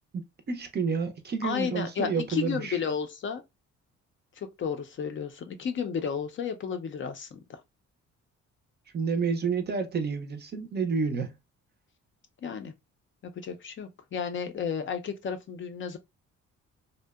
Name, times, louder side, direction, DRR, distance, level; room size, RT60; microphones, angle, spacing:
voice 1, 0.1-2.8 8.9-11.4, right 5 dB, 35° right, 0.5 m, -30 dB
voice 2, 1.4-3.4 4.4-7.6 12.4-12.7 13.2-16.0, left 6 dB, 40° left, 0.4 m, -33 dB
2.7 x 2.1 x 2.2 m
cardioid pair, 90°, 30 cm